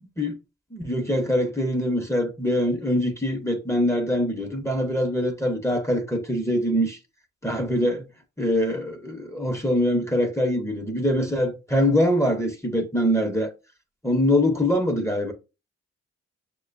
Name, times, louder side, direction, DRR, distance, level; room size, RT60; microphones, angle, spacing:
voice 1, 0.7-7.0 7.4-8.1 8.4-13.5 14.0-15.3, equal, 10° left, 0.9 m, -23 dB
6.3 x 2.2 x 2.5 m
supercardioid pair, 45°, 31 cm